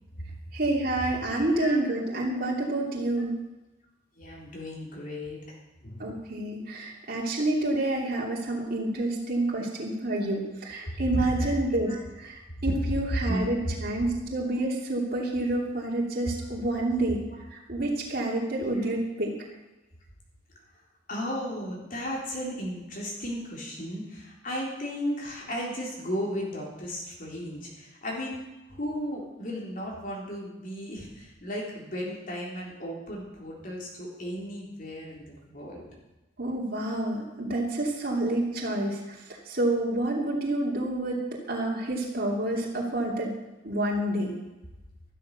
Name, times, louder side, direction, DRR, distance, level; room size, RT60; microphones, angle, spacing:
voice 1, 0.5-3.3 6.0-17.2 17.5-19.3 36.4-39.0 39.5-41.2 41.5-43.3 43.6-44.3, right 1 dB, 50° right, -3 dB, 2.9 m, -28 dB
voice 2, 1.3-1.7 4.2-5.6 5.8-6.1 10.8-11.6 11.9-12.0 13.1-14.1 16.4-16.5 18.7-18.9 21.1-35.9 37.1-37.3, equal, 45° left, -3 dB, 3.8 m, -34 dB
13.0 x 13.0 x 6.6 m, 1.0 s
head